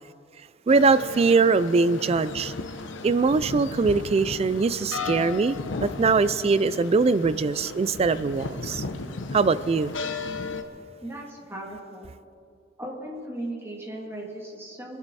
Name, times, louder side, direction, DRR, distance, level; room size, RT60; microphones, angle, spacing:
sound 1, 0.7-10.6, left 3 dB, 80° left, 0.9 m, -35 dB
voice 1, 0.7-2.5 3.0-8.8 9.3-9.9, right 4 dB, 35° right, 15 dB, 0.3 m, -22 dB
voice 2, 11.0-12.1 12.8-15.0, right 1 dB, 15° right, -3 dB, 2.7 m, -37 dB
24.5 x 11.5 x 4.2 m, 2.4 s
head